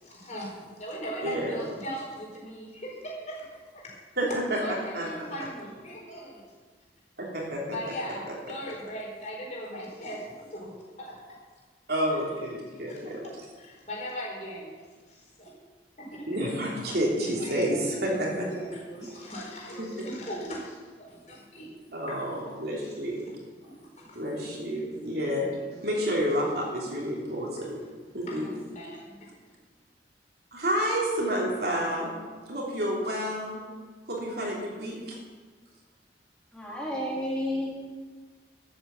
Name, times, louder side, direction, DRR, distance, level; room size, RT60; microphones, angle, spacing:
voice 1, 0.0-3.5 3.7-3.9 4.5-6.4 7.7-10.7 11.0-11.2 12.8-14.7 15.1-15.5 16.0-16.5 17.2-22.3 22.8-23.0 23.6-24.4 28.3-29.3, equal, 40° left, -3 dB, 4.7 m, -39 dB
voice 2, 1.2-1.6 4.2-4.6 4.9-5.3 7.2-7.9 11.9-13.2 16.3-18.4 19.8-19.9 21.9-23.2 24.1-25.5 25.8-27.8 28.1-28.4 30.5-32.1 32.5-33.6 34.1-35.2, equal, 60° right, -2 dB, 3.1 m, -29 dB
voice 3, 36.5-37.7, left 1 dB, 5° left, -6 dB, 4.0 m, -31 dB
12.5 x 9.0 x 7.7 m, 1.4 s
head